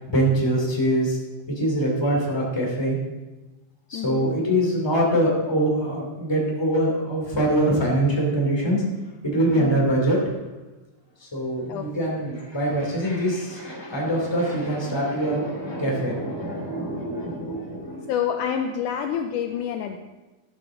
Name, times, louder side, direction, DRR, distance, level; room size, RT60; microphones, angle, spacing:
voice 1, 0.1-1.2 1.6-3.0 3.9-8.8 9.2-10.2 11.2-18.1, right 1 dB, 10° left, -2 dB, 2.3 m, -23 dB
voice 2, 3.9-4.3 9.6-9.9 11.7-11.9 18.1-20.0, left 8 dB, 85° left, 5 dB, 1.8 m, -28 dB
13.0 x 11.5 x 3.8 m, 1.1 s
omnidirectional pair, 4.2 m